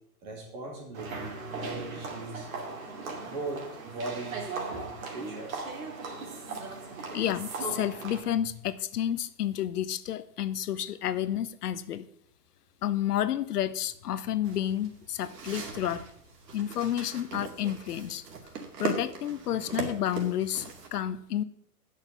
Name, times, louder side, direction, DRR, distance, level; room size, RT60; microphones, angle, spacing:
voice 1, 0.2-2.5 3.2-5.5, right 2 dB, 30° right, -2 dB, 2.8 m, -39 dB
sound 1, 0.9-8.2, right 4 dB, 60° right, 2.6 m, -38 dB
voice 2, 7.1-12.1 12.8-16.0 16.5-18.2 18.8-21.4, left 11 dB, 75° left, 15 dB, 0.8 m, -30 dB
sound 2, 14.4-20.9, right 5 dB, 85° right, 2.5 m, -39 dB
8.8 x 6.5 x 6.9 m, 0.67 s
hypercardioid pair, 175°, 47 cm